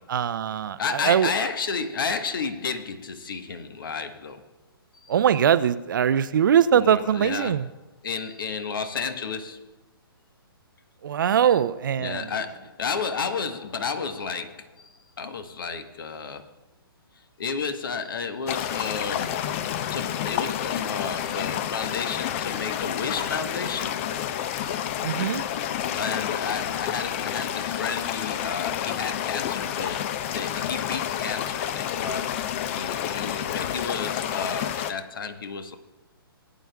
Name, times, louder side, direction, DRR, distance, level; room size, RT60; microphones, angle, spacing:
voice 1, 0.1-1.3 5.1-7.7 11.0-12.3 25.0-25.4, right 9 dB, 55° right, 14 dB, 0.5 m, -22 dB
voice 2, 0.8-4.4 5.0-5.2 6.7-7.6 8.0-9.6 12.0-16.5 17.4-19.6 19.9-24.1 25.9-35.8, left 5 dB, 60° left, 9 dB, 1.2 m, -32 dB
sound 1, 18.5-34.9, left 10 dB, 30° left, 0.5 m, -29 dB
19.5 x 9.1 x 2.3 m, 1.1 s
figure-of-eight pair, 130°, 13 cm